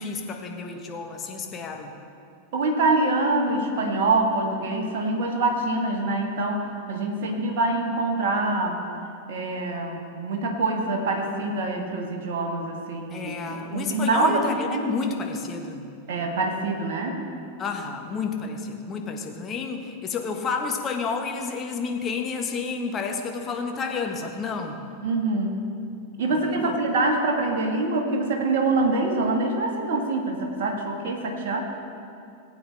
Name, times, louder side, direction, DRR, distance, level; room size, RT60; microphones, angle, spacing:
voice 1, 0.0-1.9 13.1-15.9 17.6-24.8 26.3-26.8, left 5 dB, 25° left, 3 dB, 1.3 m, -30 dB
voice 2, 2.5-8.8 9.3-15.0 16.1-17.2 25.0-25.6 26.2-31.6, right 2 dB, 55° right, 1 dB, 1.6 m, -25 dB
19.0 x 8.6 x 3.4 m, 2.6 s
figure-of-eight pair, 90°, 0 cm